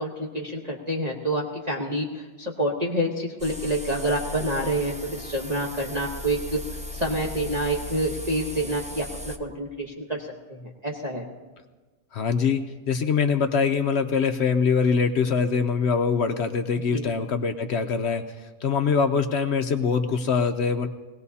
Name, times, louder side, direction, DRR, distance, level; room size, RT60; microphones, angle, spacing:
voice 1, 0.0-11.3 16.7-17.0, right 1 dB, 30° right, -3 dB, 1.2 m, -28 dB
sound 1, 3.4-9.4, left 1 dB, 10° right, 0.3 m, -37 dB
voice 2, 12.1-20.9, left 5 dB, 60° left, 7 dB, 0.8 m, -23 dB
21.5 x 17.0 x 2.8 m, 1.3 s
omnidirectional pair, 1.5 m